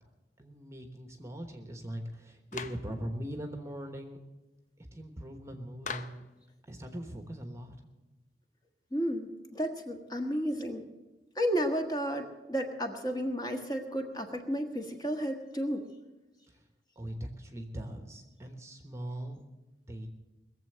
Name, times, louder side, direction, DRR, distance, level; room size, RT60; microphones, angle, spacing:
voice 1, 0.4-4.2 4.8-6.2 6.6-7.7 16.5-16.6 16.9-19.4 19.9-20.1, right 1 dB, 15° right, 5 dB, 1.1 m, -41 dB
Clapping, 2.5-2.9 5.8-6.3, left 5 dB, 45° left, 0.7 m, -39 dB
voice 2, 8.9-10.8 11.3-15.8, equal, 20° left, 3 dB, 1.6 m, -32 dB
20.5 x 7.5 x 7.8 m, 1.1 s
head